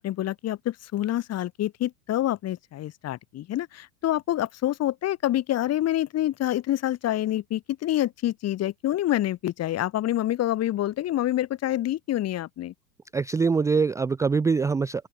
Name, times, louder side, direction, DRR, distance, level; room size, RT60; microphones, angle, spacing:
voice 1, 0.0-12.7, left 13 dB, 40° left, 5.0 m, -27 dB
voice 2, 13.1-15.1, right 5 dB, 10° right, 0.5 m, -23 dB
open air
figure-of-eight pair, 85°, 40 cm